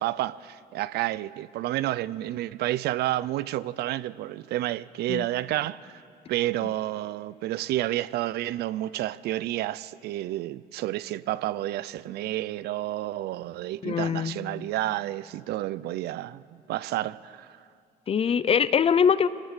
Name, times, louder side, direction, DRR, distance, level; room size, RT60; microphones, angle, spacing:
voice 1, 0.0-5.9 6.3-17.6, right 15 dB, 75° right, 0.5 m, -30 dB
voice 2, 13.8-14.4 18.1-19.3, left 7 dB, 35° left, 0.6 m, -22 dB
24.5 x 18.5 x 6.7 m
cardioid pair, 110°, 17 cm